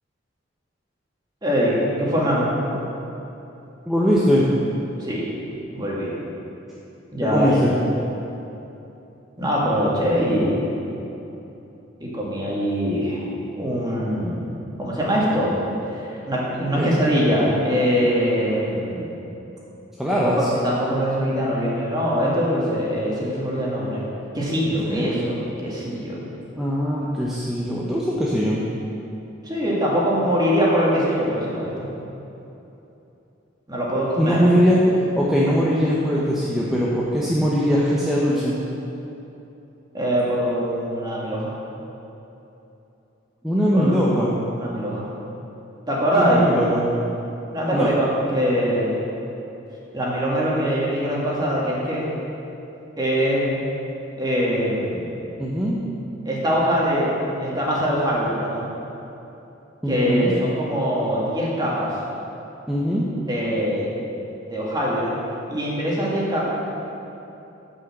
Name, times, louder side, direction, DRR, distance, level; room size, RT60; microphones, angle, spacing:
voice 1, 1.4-2.5 5.0-5.2 5.7-6.1 7.1-7.7 9.4-10.6 12.0-13.3 13.6-14.4 14.8-15.6 15.9-19.1 20.1-24.0 24.3-25.3 25.6-26.2 29.4-31.9 33.7-34.4 39.9-41.5 43.7-44.0 44.6-45.1 45.9-46.5 47.5-49.0 49.9-52.1 53.0-53.6 54.2-55.1 56.3-58.7 59.9-62.0 63.3-63.9 64.5-65.1 65.5-66.4, equal, 20° right, -5 dB, 2.1 m, -23 dB
voice 2, 3.9-4.5 7.2-7.7 16.8-16.9 20.0-20.5 24.8-25.3 26.5-28.6 34.2-34.8 35.2-38.5 43.4-44.3 46.1-46.8 47.7-47.9 55.4-55.8 59.8-60.3 62.7-63.0, equal, ahead, -7 dB, 0.9 m, -21 dB
9.9 x 5.6 x 7.3 m, 2.9 s
head